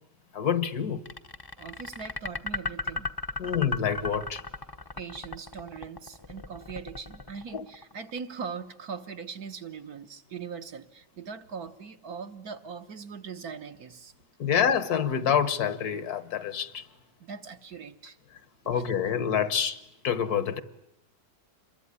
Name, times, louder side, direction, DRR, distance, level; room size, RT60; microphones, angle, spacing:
voice 1, 0.3-1.0 3.4-4.4 7.5-7.6 14.4-16.9 18.7-20.6, left 8 dB, 65° left, 1.7 m, -27 dB
sound 1, 1.1-8.2, left 3 dB, 20° left, 0.7 m, -36 dB
voice 2, 1.6-3.1 5.0-14.1 17.2-18.2 18.7-18.8, right 6 dB, 60° right, 1.8 m, -40 dB
27.0 x 22.5 x 9.6 m
omnidirectional pair, 1.8 m